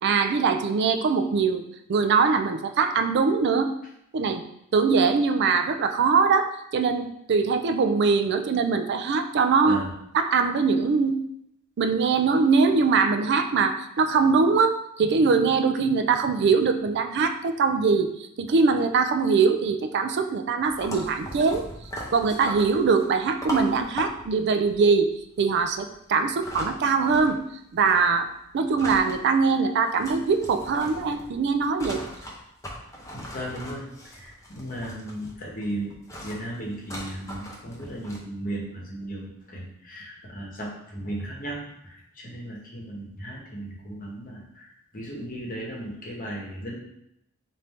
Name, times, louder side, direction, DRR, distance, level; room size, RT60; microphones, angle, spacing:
voice 1, 0.0-1.6 1.9-3.7 4.1-4.4 4.7-9.8 10.1-11.2 11.8-18.1 18.4-21.6 22.1-25.1 25.4-27.4 27.7-28.3 28.5-32.0, right 5 dB, 50° right, 8 dB, 0.3 m, -22 dB
sound 1, 20.6-27.5 27.8-29.2 29.5-29.6 29.9-38.2, left 1 dB, 15° left, 0.6 m, -39 dB
voice 2, 33.1-33.8 34.1-36.0 36.2-46.8, right 1 dB, 40° left, -2 dB, 1.0 m, -36 dB
4.2 x 2.6 x 3.4 m, 0.78 s
head